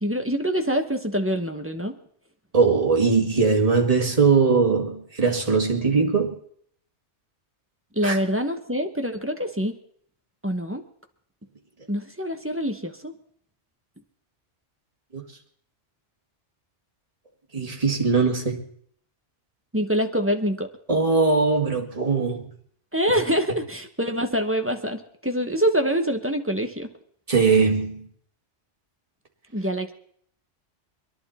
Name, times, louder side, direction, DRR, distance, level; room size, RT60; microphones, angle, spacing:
voice 1, 0.0-1.9 7.9-9.7 10.4-10.8 11.9-13.1 19.7-20.7 22.9-26.9 29.5-29.9, equal, 10° right, 5 dB, 1.0 m, -25 dB
voice 2, 2.5-6.4 8.0-8.2 15.1-15.2 17.5-18.6 20.9-22.4 27.3-28.1, right 4 dB, 30° right, 0 dB, 2.1 m, -20 dB
24.5 x 11.0 x 4.2 m, 0.63 s
omnidirectional pair, 1.2 m